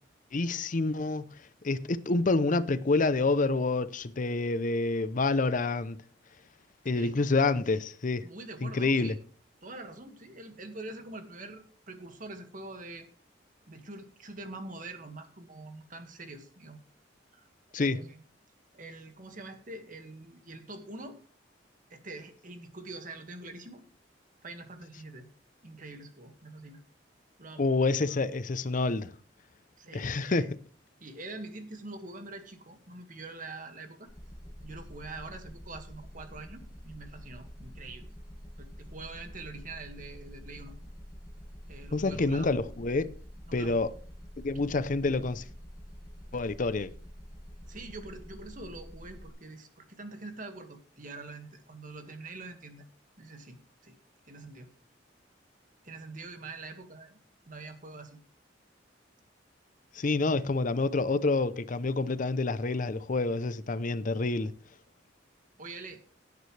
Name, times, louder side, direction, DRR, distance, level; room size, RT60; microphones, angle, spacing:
voice 1, 0.3-1.2 1.6-6.0 6.8-8.2 8.6-9.1 17.7-18.0 27.6-29.1 29.9-30.5 41.9-43.1 43.5-43.9 44.4-45.4 46.3-46.9 59.9-64.5, left 3 dB, 45° left, 0.6 m, -28 dB
voice 2, 8.2-9.2 9.6-13.1 13.7-16.8 17.3-17.5 17.8-18.2 18.7-21.2 21.9-23.8 24.4-25.3 25.6-26.8 27.4-27.7 29.8-30.5 31.0-34.1 34.6-38.1 38.6-40.7 41.7-42.5 43.5-43.9 47.7-52.9 53.2-54.0 54.3-54.7 55.8-57.2 57.5-58.2 65.6-66.0, right 2 dB, 45° right, 1.9 m, -45 dB
sound 1, 34.1-49.3, equal, 20° left, 1.7 m, -47 dB
17.0 x 9.3 x 3.3 m
head